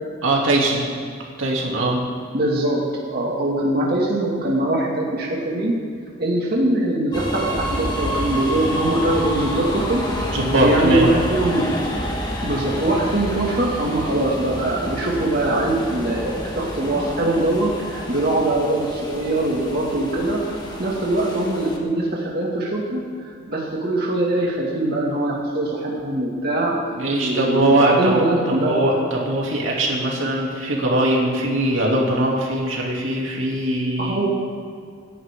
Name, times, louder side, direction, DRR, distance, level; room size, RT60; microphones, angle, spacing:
voice 1, 0.2-0.9 1.4-2.0 10.3-11.1 26.9-28.2 28.5-34.2, right 1 dB, 80° right, -3 dB, 2.9 m, -21 dB
voice 2, 2.3-5.7 6.2-10.0 10.6-11.7 12.4-26.8 27.2-28.8 34.0-34.3, right 1 dB, 50° right, -4 dB, 2.3 m, -22 dB
sound 1, 7.1-21.8, equal, 20° left, 1.7 m, -29 dB
27.0 x 11.0 x 3.8 m, 2.2 s
head